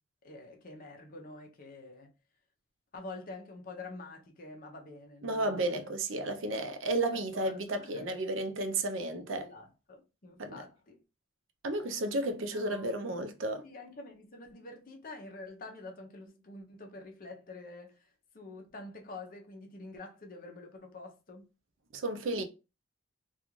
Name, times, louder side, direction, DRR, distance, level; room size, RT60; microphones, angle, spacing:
voice 1, 0.2-2.1 2.9-5.8 7.3-8.1 9.3-11.0 12.5-13.1 13.6-18.1 18.3-21.5, left 2 dB, 45° left, 0.6 m, -47 dB
voice 2, 5.2-9.5 10.4-10.6 11.6-13.7 21.9-22.4, right 2 dB, 70° right, 0.5 m, -33 dB
2.4 x 2.3 x 3.0 m
head